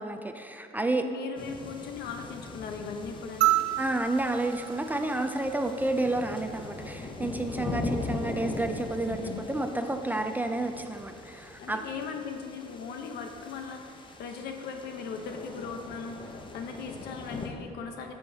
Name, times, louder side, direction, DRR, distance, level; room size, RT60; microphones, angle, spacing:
voice 1, 0.0-1.0 3.8-9.2 9.5-11.8, right 2 dB, 10° right, 5 dB, 0.4 m, -30 dB
voice 2, 1.0-3.6 9.1-9.5 11.6-18.1, left 5 dB, 75° left, 4 dB, 0.9 m, -38 dB
sound 1, 1.4-17.5, left 3 dB, 30° left, 0.7 m, -40 dB
sound 2, 3.4-6.0 7.6-7.7, right 16 dB, 75° right, 0.4 m, -30 dB
10.5 x 7.0 x 2.8 m, 2.5 s
cardioid pair, 110°, 17 cm